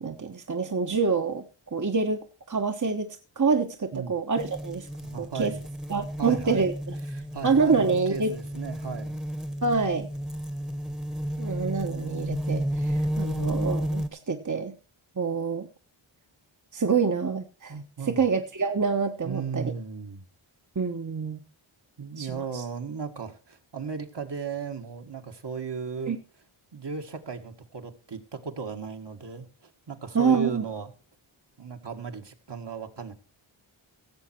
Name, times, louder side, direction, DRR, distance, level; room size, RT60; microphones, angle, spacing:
voice 1, 0.0-1.4 1.7-4.9 5.2-5.5 5.9-6.9 7.4-8.3 9.6-10.1 11.4-14.7 15.2-15.7 16.7-19.7 20.7-21.4 22.2-22.6 26.1-26.2 30.1-30.7, right 5 dB, 35° right, 5 dB, 1.2 m, -26 dB
sound 1, 4.4-14.1, equal, ahead, 1.2 m, -32 dB
voice 2, 5.0-5.6 6.2-6.6 7.1-9.3 18.0-18.3 19.2-20.2 22.0-26.1 26.7-30.9 31.6-33.1, right 5 dB, 55° right, 5 dB, 1.9 m, -36 dB
16.5 x 7.4 x 4.4 m, 0.35 s
cardioid pair, 55°, 50 cm